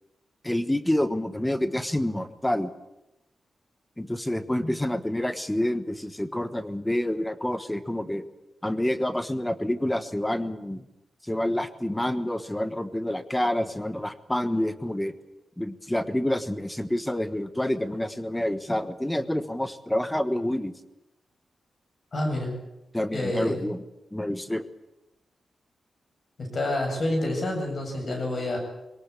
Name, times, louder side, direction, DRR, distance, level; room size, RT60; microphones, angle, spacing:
voice 1, 0.4-2.7 4.0-8.2 8.6-10.8 11.2-15.1 15.6-20.7 22.9-23.8 24.1-24.6, left 1 dB, 5° left, 11 dB, 1.3 m, -28 dB
voice 2, 22.1-22.5 23.1-23.6 26.4-28.6, left 1 dB, 40° left, 3 dB, 7.7 m, -28 dB
22.5 x 18.5 x 8.5 m, 0.92 s
wide cardioid pair, 165°, 0 cm